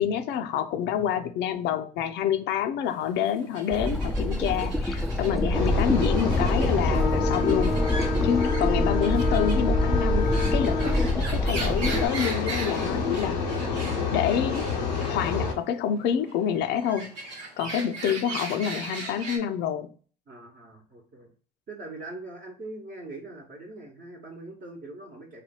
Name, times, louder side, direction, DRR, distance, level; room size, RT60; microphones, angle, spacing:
voice 1, 0.0-7.8 8.2-13.4 14.1-14.7 15.0-17.1 17.6-19.9, left 8 dB, 55° left, 0.5 m, -28 dB
sound 1, 2.9-19.4, right 2 dB, 85° right, 1.0 m, -40 dB
sound 2, 3.7-12.1, left 1 dB, ahead, 0.4 m, -25 dB
sound 3, 5.5-15.5, left 5 dB, 90° left, 0.7 m, -29 dB
voice 2, 20.3-21.3 21.7-25.4, right 2 dB, 40° right, 1.0 m, -42 dB
3.3 x 2.2 x 4.2 m
hypercardioid pair, 70°, 21 cm